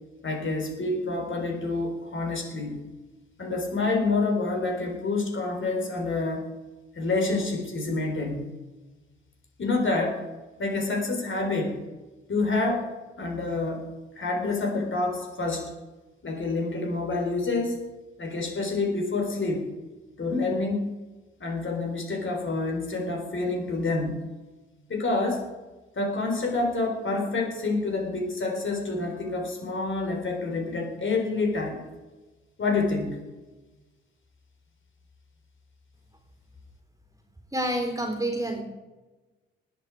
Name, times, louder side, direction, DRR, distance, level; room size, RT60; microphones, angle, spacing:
voice 1, 0.2-2.8 3.4-6.5 7.0-8.4 9.6-10.2 10.6-11.8 12.3-12.9 13.2-13.9 14.1-15.7 16.2-17.9 18.2-19.7 20.2-20.9 21.4-24.2 24.9-25.5 25.9-31.9 32.6-33.2, left 3 dB, 40° left, 2 dB, 4.1 m, -28 dB
voice 2, 37.5-38.6, right 1 dB, 10° right, 3 dB, 3.7 m, -28 dB
19.5 x 8.5 x 4.9 m, 1.2 s
figure-of-eight pair, 40°, 30 cm